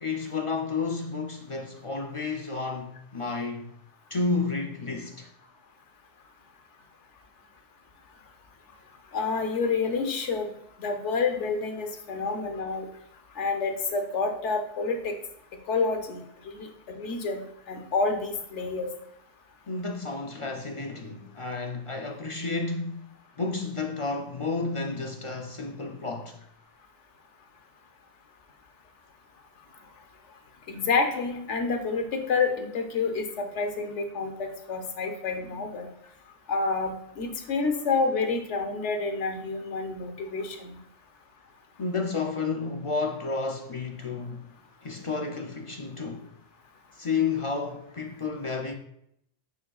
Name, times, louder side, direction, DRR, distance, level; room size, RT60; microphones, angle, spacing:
voice 1, 0.0-3.8 4.1-5.3 19.7-23.1 23.4-26.4 41.8-44.5 44.8-46.3 47.0-48.7, left 4 dB, 45° left, 0.4 m, -31 dB
voice 2, 9.1-10.5 10.8-12.9 13.4-15.1 15.7-16.2 16.5-17.4 17.7-18.9 30.7-35.9 36.5-40.7, left 4 dB, 80° left, 1.2 m, -28 dB
8.4 x 5.1 x 2.4 m
omnidirectional pair, 1.2 m